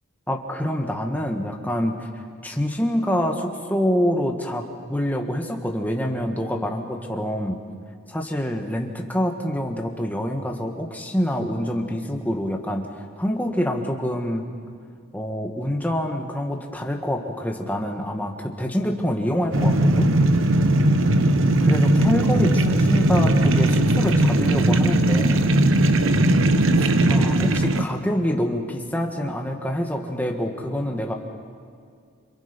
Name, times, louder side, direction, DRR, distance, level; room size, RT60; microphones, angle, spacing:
voice 1, 0.3-2.1 2.4-7.6 8.1-14.4 15.1-20.1 21.6-25.5 27.1-31.1, equal, 5° left, 2 dB, 1.6 m, -26 dB
sound 1, 19.5-27.8, right 1 dB, 60° right, 1.0 m, -18 dB
27.5 x 26.5 x 5.3 m, 2.2 s
head